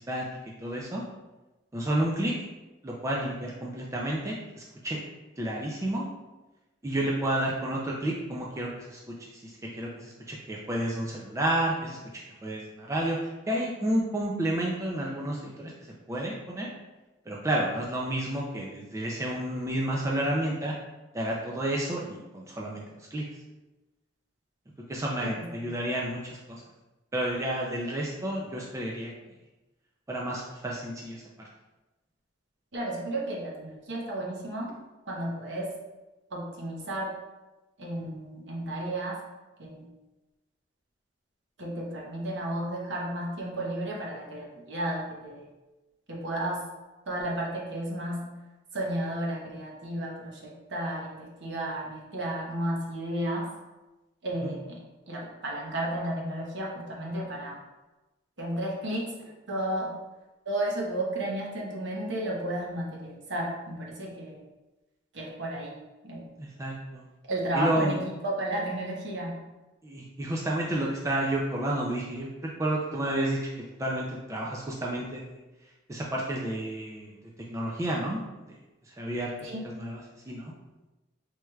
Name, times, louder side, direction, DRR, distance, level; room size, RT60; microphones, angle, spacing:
voice 1, 0.6-1.1 1.7-2.3 2.8-5.0 5.4-6.1 6.8-12.0 12.4-15.7 16.1-16.7 17.3-20.7 21.1-23.3 24.9-26.6 27.1-29.1 30.1-31.2 54.4-54.5 66.4-67.1 67.5-68.0 69.8-72.3 72.6-73.4 73.8-75.2 75.9-77.1 77.5-78.2 78.5-78.6 78.9-80.5, right 1 dB, 15° right, -3 dB, 0.3 m, -31 dB
voice 2, 25.2-25.7 32.7-34.7 35.1-35.7 36.3-37.1 37.8-39.2 39.6-39.9 41.6-45.5 46.1-46.6 47.1-48.2 48.7-53.5 54.2-54.8 55.1-57.6 58.4-59.1 59.5-59.9 60.5-64.4 65.1-65.8 66.0-66.3 67.3-69.4 79.4-79.7, right 1 dB, 60° right, -2 dB, 0.9 m, -33 dB
4.5 x 3.1 x 2.3 m, 1.1 s
head